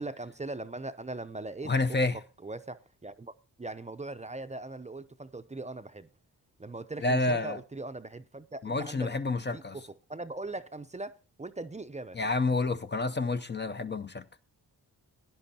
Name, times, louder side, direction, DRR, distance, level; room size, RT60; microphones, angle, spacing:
voice 1, 0.0-1.7 2.1-6.1 6.6-9.1 9.4-9.8 10.1-12.3, right 2 dB, 20° right, 0.6 m, -40 dB
voice 2, 1.7-2.2 7.0-7.6 8.6-9.8 12.2-14.2, left 3 dB, 30° left, 0.6 m, -29 dB
17.5 x 10.0 x 2.8 m
cardioid pair, 50°, 38 cm